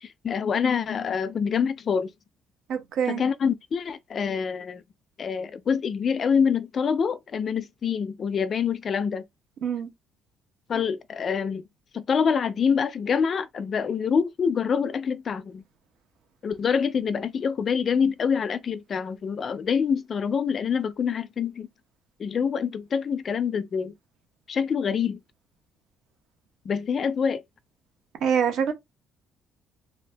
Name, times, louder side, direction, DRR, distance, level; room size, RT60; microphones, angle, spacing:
voice 1, 0.0-2.1 3.1-4.8 5.2-9.2 10.7-11.6 11.9-15.6 16.4-21.7 22.2-23.9 24.5-25.2 26.7-27.4, left 6 dB, 35° left, 0.3 m, -26 dB
voice 2, 2.7-3.2 9.6-9.9 28.2-28.7, right 7 dB, 60° right, 0.8 m, -25 dB
2.6 x 2.6 x 3.3 m
cardioid pair, 165°, 0 cm